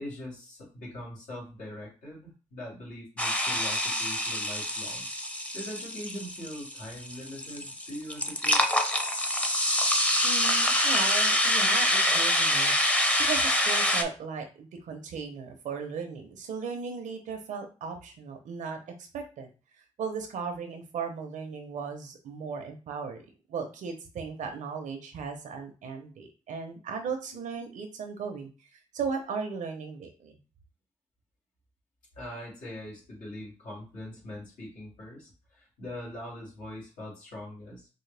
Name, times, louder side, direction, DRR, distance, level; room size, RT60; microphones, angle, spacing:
voice 1, 0.0-5.1 5.5-8.6 32.2-37.9, left 1 dB, 90° left, -4 dB, 2.1 m, -42 dB
sound 1, 3.2-14.0, left 1 dB, 10° left, 0.6 m, -26 dB
voice 2, 10.2-19.5 20.0-23.2 23.5-28.5 28.9-30.4, right 5 dB, 90° right, 4 dB, 0.9 m, -36 dB
4.7 x 2.2 x 3.4 m, 0.33 s
cardioid pair, 70°, 13 cm